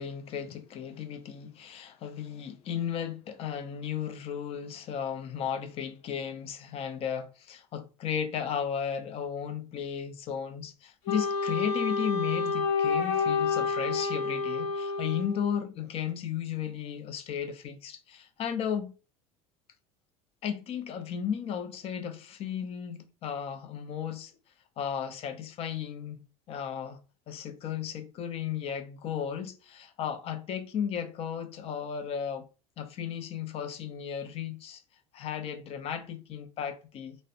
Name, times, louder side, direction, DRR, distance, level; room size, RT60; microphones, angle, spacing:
voice 1, 0.0-18.9 20.4-24.3 24.8-27.0 27.3-32.4 32.8-34.8 35.1-37.2, left 8 dB, 45° left, 0.4 m, -35 dB
Wind instrument woodwind instrument, 11.1-15.7, left 4 dB, 65° left, 0.9 m, -29 dB
2.4 x 2.1 x 2.6 m
supercardioid pair, 95°, 14 cm